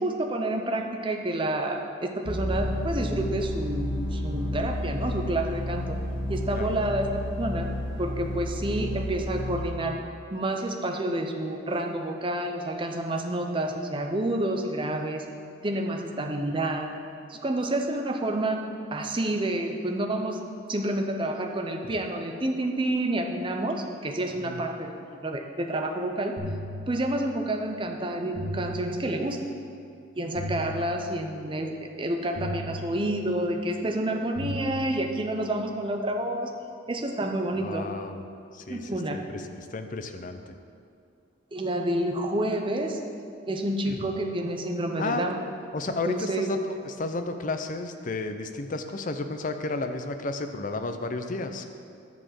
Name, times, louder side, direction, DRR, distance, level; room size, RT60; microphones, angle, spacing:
voice 1, 0.0-6.0 6.3-7.7 8.0-10.0 10.3-15.3 15.6-16.9 17.3-18.6 18.9-20.4 20.7-24.9 25.2-26.3 26.9-29.4 30.1-36.5 36.9-37.9 38.7-39.2 41.5-43.0 43.5-45.4 45.9-46.5, right 1 dB, 25° right, 4 dB, 0.6 m, -29 dB
sound 1, 2.3-9.6, left 1 dB, 85° left, 2.1 m, -31 dB
sound 2, 26.4-27.5 28.4-29.5 30.4-31.5 32.4-33.5 34.4-35.5, equal, 70° right, 1.5 m, -37 dB
voice 2, 37.6-38.2 38.5-40.5 43.9-44.1 45.0-45.3 45.7-51.6, left 3 dB, 40° left, 7 dB, 0.5 m, -32 dB
10.5 x 4.3 x 7.5 m, 2.4 s
head